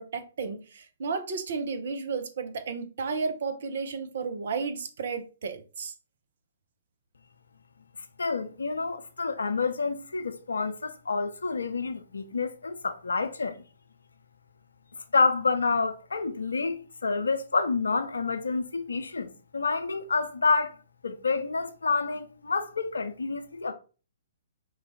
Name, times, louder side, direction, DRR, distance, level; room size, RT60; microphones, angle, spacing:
voice 1, 0.0-5.9, right 5 dB, 55° right, 0.7 m, -33 dB
voice 2, 8.2-13.6 15.0-20.8 21.0-23.7, left 4 dB, 70° left, 0.6 m, -28 dB
4.6 x 2.4 x 4.0 m
figure-of-eight pair, 120°, 0 cm